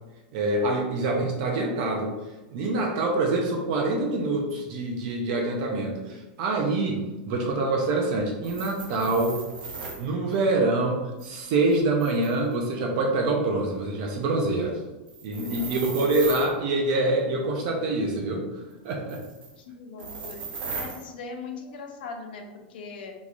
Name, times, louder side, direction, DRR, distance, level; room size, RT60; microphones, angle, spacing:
voice 1, 0.3-2.1 2.5-9.4 10.0-14.8 15.2-18.5 18.8-19.2, right 2 dB, 45° right, 1 dB, 0.6 m, -25 dB
sound 1, 8.4-10.0 11.2-12.5 15.1-16.5 18.9-19.6 20.0-21.1, right 4 dB, 85° right, 1.0 m, -37 dB
voice 2, 15.6-16.0 19.6-20.5 20.8-23.1, left 4 dB, 70° left, 4 dB, 0.6 m, -40 dB
3.7 x 3.0 x 2.5 m, 1.1 s
supercardioid pair, 165°, 5 cm